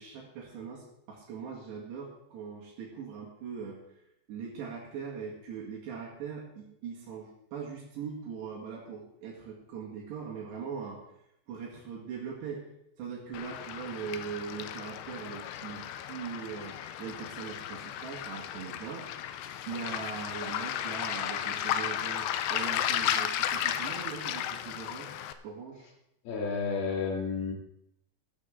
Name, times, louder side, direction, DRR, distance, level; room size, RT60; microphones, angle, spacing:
voice 1, 0.0-3.8 4.3-11.0 11.5-12.6 13.0-19.1 19.7-25.1 25.4-25.9, right 6 dB, 75° right, -4 dB, 4.1 m, -41 dB
Waves surf, 13.3-25.3, left 11 dB, 85° left, 2.8 m, -34 dB
voice 2, 26.3-27.5, left 5 dB, 65° left, 0 dB, 3.9 m, -31 dB
13.5 x 12.0 x 3.7 m, 0.81 s
omnidirectional pair, 4.9 m